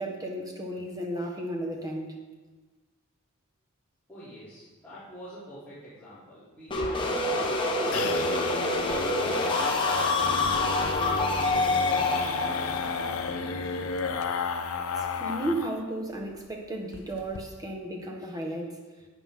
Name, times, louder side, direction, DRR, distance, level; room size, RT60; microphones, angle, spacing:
voice 1, 0.0-2.2 14.9-18.8, right 1 dB, 20° right, 1 dB, 1.4 m, -34 dB
voice 2, 4.1-9.0 9.5-10.1 10.4-13.7, equal, 5° left, -15 dB, 3.2 m, -47 dB
sound 1, 6.7-15.8 16.1-16.2 16.5-16.6 16.9-17.4, left 4 dB, 80° left, 0.7 m, -33 dB
sound 2, 6.7-14.4, left 2 dB, 25° left, 1.2 m, -27 dB
11.5 x 8.3 x 3.8 m, 1.3 s
head